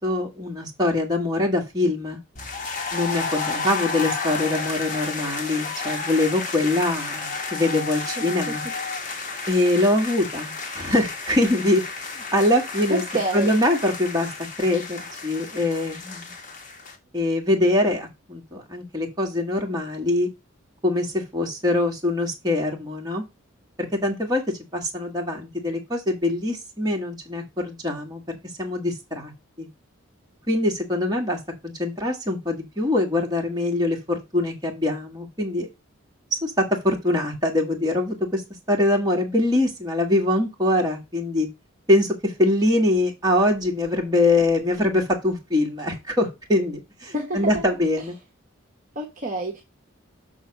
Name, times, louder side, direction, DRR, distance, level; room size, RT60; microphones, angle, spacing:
voice 1, 0.0-2.2 2.9-8.6 9.5-12.1 12.3-13.0 13.3-14.3 14.6-16.3 17.1-20.3 20.8-23.2 23.8-24.4 24.7-28.2 28.6-29.3 29.6-29.7 30.5-31.4 31.6-35.7 36.3-38.4 38.7-41.5 41.9-48.1, left 1 dB, 20° right, 1.8 m, -23 dB
sound 1, 2.4-17.0, left 4 dB, 40° left, 1.4 m, -32 dB
voice 2, 8.2-8.6 12.9-13.6 47.1-47.6 48.9-49.6, right 2 dB, 40° right, 1.2 m, -28 dB
6.4 x 4.0 x 5.8 m
head